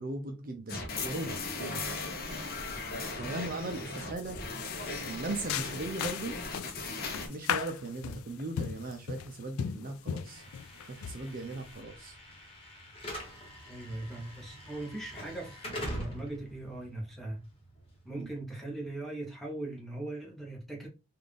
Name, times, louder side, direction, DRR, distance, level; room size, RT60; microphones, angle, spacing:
voice 1, 0.0-1.8 3.2-4.4 5.0-6.4 7.3-10.4 10.9-12.2 18.2-18.3, right 2 dB, 40° right, 0.5 m, -38 dB
sound 1, 0.7-7.3, left 3 dB, 40° left, 0.7 m, -37 dB
sound 2, 3.5-3.8 4.2-11.8, left 8 dB, 75° left, 0.3 m, -38 dB
Slam / Alarm, 10.3-18.3, equal, 25° left, 1.1 m, -44 dB
voice 2, 13.7-17.4 18.0-20.9, right 2 dB, ahead, 1.0 m, -40 dB
3.8 x 2.4 x 3.3 m
head